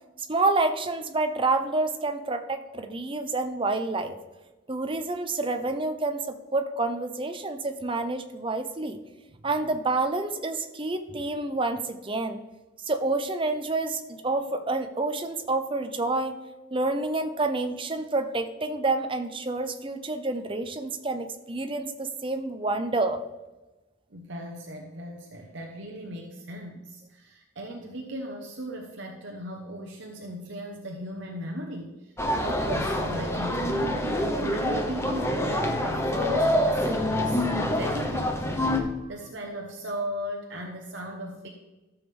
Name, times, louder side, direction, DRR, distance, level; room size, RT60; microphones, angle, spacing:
voice 1, 0.3-4.2 4.7-9.0 9.4-12.4 12.8-16.4 16.7-23.2, right 2 dB, 25° right, 8 dB, 0.7 m, -28 dB
voice 2, 24.1-33.8 34.2-38.6 39.1-41.5, equal, 55° right, 1 dB, 1.0 m, -37 dB
sound 1, 32.2-38.8, left 1 dB, 10° left, 0.9 m, -26 dB
13.5 x 7.2 x 3.5 m, 1.1 s
head